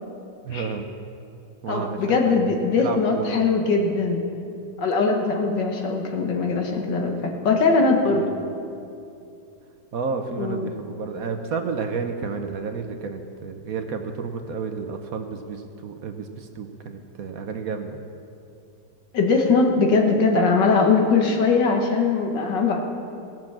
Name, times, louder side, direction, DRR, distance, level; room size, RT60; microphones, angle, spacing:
voice 1, 0.4-0.9 1.6-2.4 2.8-3.4 8.1-8.3 9.9-18.0, right 5 dB, 60° right, 6 dB, 1.1 m, -31 dB
voice 2, 1.7-4.2 4.8-8.2 10.4-10.7 19.1-22.8, left 4 dB, 80° left, 2 dB, 2.0 m, -21 dB
17.5 x 6.1 x 7.3 m, 2.6 s
omnidirectional pair, 1.9 m